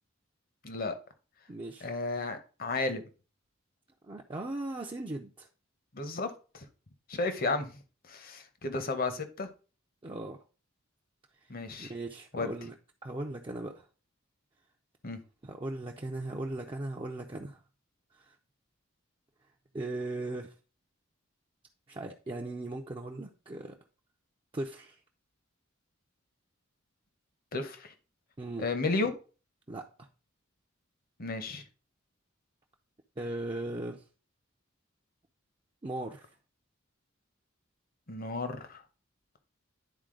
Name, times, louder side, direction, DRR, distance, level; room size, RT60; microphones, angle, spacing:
voice 1, 0.6-1.0 1.8-3.0 5.9-6.6 7.1-7.7 8.1-9.5 11.5-11.9 12.3-12.5 15.0-15.2 27.5-27.9 28.6-29.1 31.2-31.6 38.1-38.8, left 3 dB, 45° left, 0.9 m, -33 dB
voice 2, 1.5-1.9 4.1-5.5 10.0-10.4 11.8-12.7 13.0-13.9 15.4-17.6 18.3-18.4 19.7-20.5 21.9-23.7 24.5-25.0 28.4-28.7 29.7-29.9 33.2-34.0 35.8-36.3, right 2 dB, 25° right, 0.5 m, -38 dB
10.5 x 4.1 x 3.8 m
head